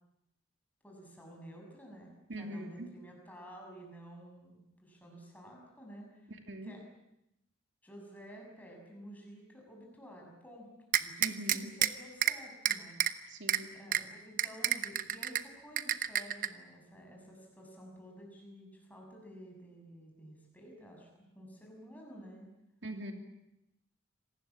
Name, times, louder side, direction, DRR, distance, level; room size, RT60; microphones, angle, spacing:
voice 1, 0.8-6.3 6.6-6.8 7.8-10.7 11.0-13.4 13.7-22.5, equal, 10° left, 0 dB, 6.9 m, -52 dB
voice 2, 2.3-2.9 6.3-6.7 11.2-11.7 13.3-13.7 22.8-23.1, right 1 dB, 65° right, 4 dB, 2.9 m, -42 dB
sound 1, 10.9-11.9 12.2-12.3 12.6-13.1 13.5-13.6 13.9-14.0 14.4-15.4 15.8-16.5, right 10 dB, 45° right, 1.0 m, -28 dB
26.0 x 19.0 x 8.8 m, 0.87 s
head